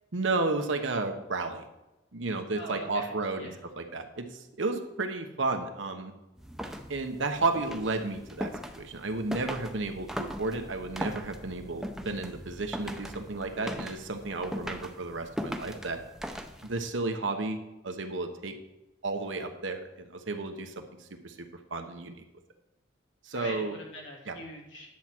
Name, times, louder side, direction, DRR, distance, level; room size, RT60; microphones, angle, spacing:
voice 1, 0.1-1.6 2.1-4.3 4.6-6.1 6.9-8.5 8.8-16.0 16.6-17.6 17.8-18.5 19.0-19.9 20.1-20.7 21.2-21.3 21.7-22.2 23.3-23.8 24.3-24.4, right 3 dB, 85° right, 6 dB, 1.1 m, -32 dB
voice 2, 2.5-3.1 3.4-3.6 23.3-25.0, equal, 80° left, -2 dB, 2.6 m, -43 dB
sound 1, 6.4-16.9, equal, ahead, 0.6 m, -40 dB
10.5 x 7.4 x 4.6 m, 1.0 s
head